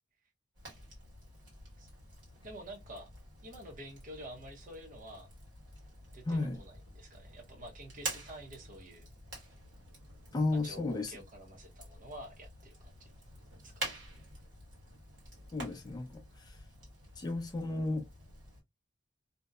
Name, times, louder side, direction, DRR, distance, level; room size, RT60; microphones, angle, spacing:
Fire, 0.5-18.6, right 2 dB, 70° right, 1.5 m, -48 dB
voice 1, 1.8-3.1 3.4-5.3 6.1-9.1 10.5-13.1 13.6-13.9, right 1 dB, 45° right, 0.7 m, -49 dB
voice 2, 6.3-6.6 10.3-11.2 15.5-16.6 17.2-18.1, left 2 dB, 20° left, 0.4 m, -34 dB
2.7 x 2.1 x 2.2 m
head